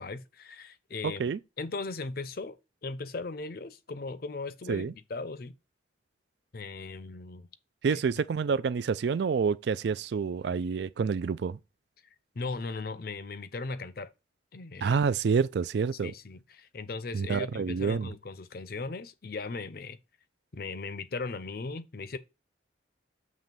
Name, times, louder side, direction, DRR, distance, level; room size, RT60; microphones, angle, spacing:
voice 1, 0.0-1.2 1.6-2.6 2.8-5.5 6.5-7.5 7.8-8.0 12.3-14.1 14.5-15.0 16.0-20.0 20.5-22.2, left 3 dB, 55° left, 0.6 m, -38 dB
voice 2, 7.8-11.6 14.8-16.1 17.1-18.1, right 5 dB, 65° right, 0.4 m, -28 dB
7.5 x 3.2 x 5.3 m
head